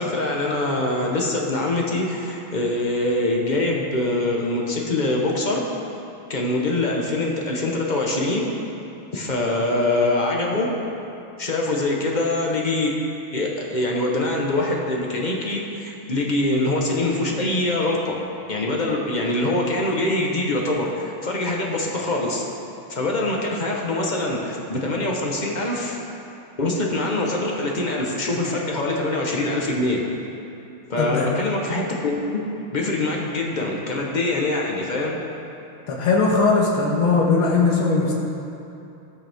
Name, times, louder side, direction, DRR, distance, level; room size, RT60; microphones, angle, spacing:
voice 1, 0.0-5.7 6.3-8.5 9.1-10.7 11.4-12.9 13.3-18.2 18.5-22.4 22.9-26.0 26.6-30.0 30.9-32.4 32.7-35.2, left 2 dB, 30° left, -1 dB, 0.8 m, -24 dB
voice 2, 31.0-31.3 35.9-38.2, left 4 dB, 80° left, -2 dB, 2.2 m, -19 dB
18.0 x 6.6 x 3.6 m, 2.8 s
omnidirectional pair, 2.3 m